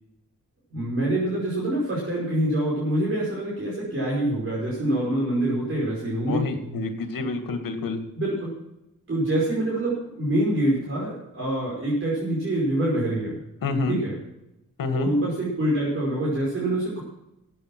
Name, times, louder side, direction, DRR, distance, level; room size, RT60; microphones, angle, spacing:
voice 1, 0.7-6.5 8.2-8.5 9.1-13.4 13.9-14.1 14.9-17.0, right 1 dB, 40° right, -6 dB, 5.3 m, -25 dB
voice 2, 6.3-8.0 13.6-14.0 14.8-15.1, left 3 dB, 80° left, 7 dB, 2.1 m, -27 dB
14.5 x 8.9 x 6.1 m, 0.88 s
wide cardioid pair, 140°, 33 cm